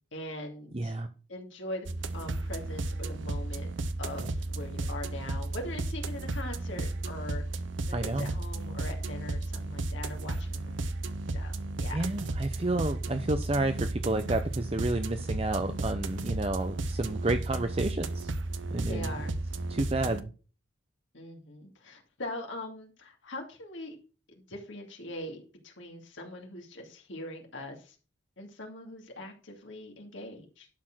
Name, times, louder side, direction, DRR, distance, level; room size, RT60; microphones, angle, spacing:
voice 1, 0.1-1.0 1.3-1.9 2.1-3.7 4.0-7.4 7.9-11.0 11.3-12.1 15.6-16.1 17.2-17.6 18.8-19.4 19.7-20.2 21.1-24.0 24.5-28.0 28.4-30.7, left 1 dB, 90° left, 2 dB, 2.4 m, -42 dB
voice 2, 0.7-1.1 7.9-8.3 11.9-18.3 18.7-19.1 19.7-20.3, right 2 dB, 30° right, 7 dB, 0.7 m, -30 dB
sound 1, 1.9-20.2, right 2 dB, 90° right, 0.9 m, -34 dB
11.5 x 4.5 x 6.1 m, 0.35 s
head